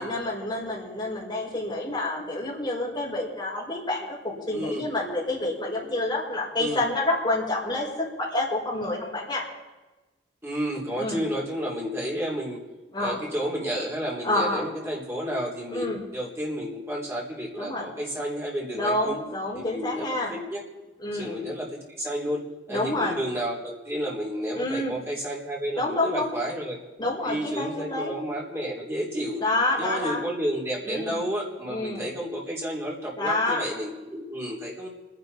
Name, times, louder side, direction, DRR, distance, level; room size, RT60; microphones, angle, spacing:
voice 1, 0.0-9.4 11.0-11.2 12.9-13.2 14.2-14.7 15.7-16.1 17.6-17.9 18.7-20.3 21.0-21.4 22.7-23.2 24.5-25.0 25.8-26.4 27.0-28.1 29.4-30.2 30.8-31.2 31.7-32.1 33.2-33.6, left 2 dB, 25° left, -6 dB, 5.3 m, -28 dB
voice 2, 4.5-4.8 6.6-6.8 10.4-12.6 13.0-19.2 19.5-20.6 21.1-26.8 27.2-29.4 29.8-34.9, equal, 15° right, -4 dB, 3.3 m, -31 dB
28.5 x 10.5 x 4.1 m, 1.1 s
head